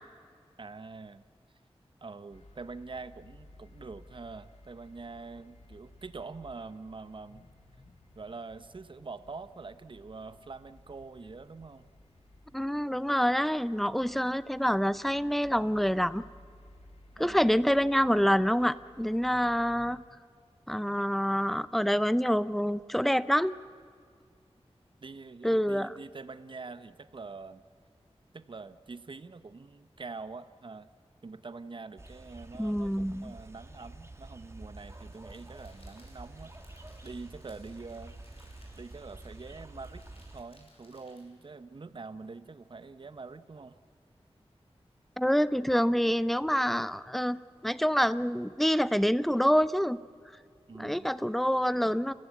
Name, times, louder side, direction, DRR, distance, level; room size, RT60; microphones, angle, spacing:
voice 1, 0.6-1.2 2.0-7.4 8.1-11.9 14.0-14.4 17.2-17.6 25.0-27.6 28.3-30.9 31.2-36.5 37.0-38.4 38.8-40.0 40.3-43.8 50.7-51.1, right 4 dB, 50° right, 13 dB, 0.8 m, -45 dB
sound 1, 2.3-19.9, left 1 dB, 80° left, 1.7 m, -57 dB
voice 2, 12.5-16.3 17.2-20.0 20.7-23.5 25.4-25.9 32.6-33.3 45.2-50.0 50.8-52.1, equal, ahead, 16 dB, 0.6 m, -27 dB
sound 2, 32.0-40.4, right 2 dB, 25° right, 1.5 m, -48 dB
Crackle, 34.8-41.5, left 1 dB, 65° left, 5.6 m, -62 dB
29.0 x 15.0 x 8.4 m, 2.1 s
wide cardioid pair, 90°, 11 cm